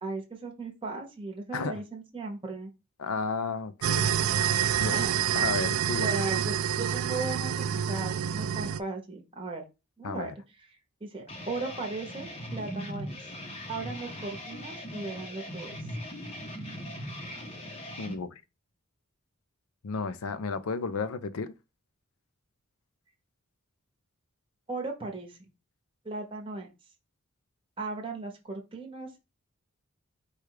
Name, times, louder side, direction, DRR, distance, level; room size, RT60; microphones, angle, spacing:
voice 1, 0.0-2.7 4.8-5.2 6.0-9.6 10.0-10.3 10.6-13.3 13.7-16.0 24.7-25.4 26.0-26.7 27.8-29.3, right 3 dB, 25° right, 1.0 m, -37 dB
voice 2, 3.0-4.1 4.8-5.0 5.4-6.1 10.0-10.3 18.0-18.3 19.8-21.5, left 4 dB, 85° left, 0.5 m, -33 dB
sound 1, 3.8-8.8, right 9 dB, 75° right, 0.3 m, -27 dB
sound 2, 11.3-18.2, equal, 30° left, 0.7 m, -40 dB
4.8 x 2.3 x 4.7 m
head